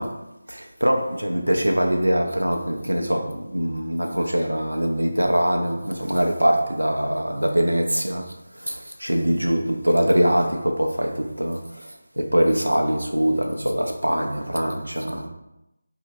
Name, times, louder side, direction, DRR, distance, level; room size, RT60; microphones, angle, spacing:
voice 1, 0.0-15.3, equal, 80° right, 0.5 m, -23 dB
2.8 x 2.8 x 2.7 m
figure-of-eight pair, 160°, 0 cm